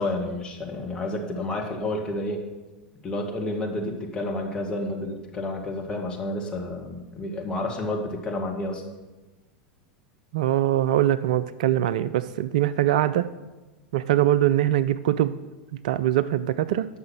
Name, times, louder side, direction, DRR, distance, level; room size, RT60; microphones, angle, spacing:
voice 1, 0.0-2.4 3.0-8.8, left 1 dB, 20° left, 0 dB, 1.9 m, -30 dB
voice 2, 10.3-13.3 13.9-15.4 15.8-16.9, right 12 dB, 55° right, 14 dB, 0.3 m, -22 dB
9.3 x 6.1 x 5.9 m, 1.1 s
figure-of-eight pair, 85°, 5 cm